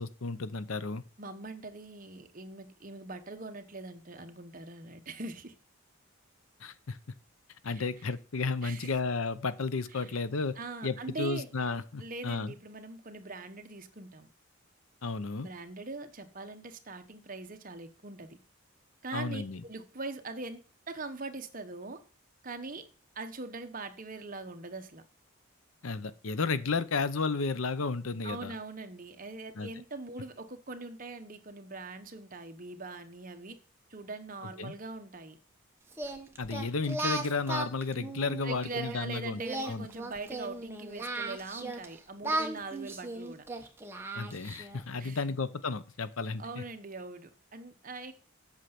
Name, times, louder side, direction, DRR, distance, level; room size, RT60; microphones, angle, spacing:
voice 1, 0.0-1.0 6.6-7.0 7.6-10.6 10.8-12.5 15.0-15.5 19.1-19.6 25.8-28.5 29.6-29.7 34.6-34.7 36.4-39.9 44.1-46.6, left 4 dB, 70° left, 0.7 m, -33 dB
voice 2, 1.2-5.5 7.6-7.9 8.6-9.0 9.9-10.2 10.6-11.5 12.0-14.3 15.4-18.4 19.0-20.6 20.9-22.0 22.4-22.9 23.1-25.0 28.2-33.6 33.9-35.4 38.4-43.4 45.0-45.2 46.4-48.1, right 3 dB, 40° right, 1.1 m, -42 dB
Singing, 35.9-39.0 39.4-41.9 42.2-44.8, right 2 dB, 10° right, 1.1 m, -36 dB
8.3 x 6.6 x 5.9 m
head